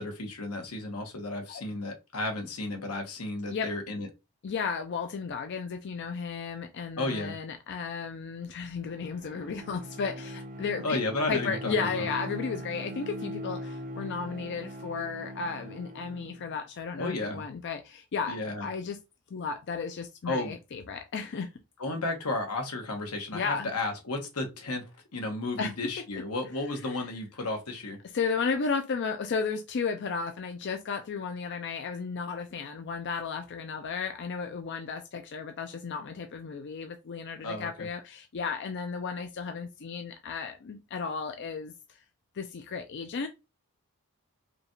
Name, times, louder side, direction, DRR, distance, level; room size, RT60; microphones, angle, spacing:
voice 1, 0.0-4.1 7.0-7.4 10.8-12.1 17.0-17.4 18.3-18.7 20.2-20.5 21.8-24.8 25.1-28.0 37.4-37.9, left 2 dB, 90° left, 1.2 m, -33 dB
voice 2, 4.4-11.0 11.3-19.0 19.3-21.5 23.3-23.7 25.6-25.7 26.9-27.0 28.1-41.7 42.3-43.3, left 5 dB, 50° left, 0.4 m, -34 dB
Bowed string instrument, 8.8-16.5, equal, 40° right, 0.6 m, -40 dB
5.0 x 2.4 x 3.1 m
head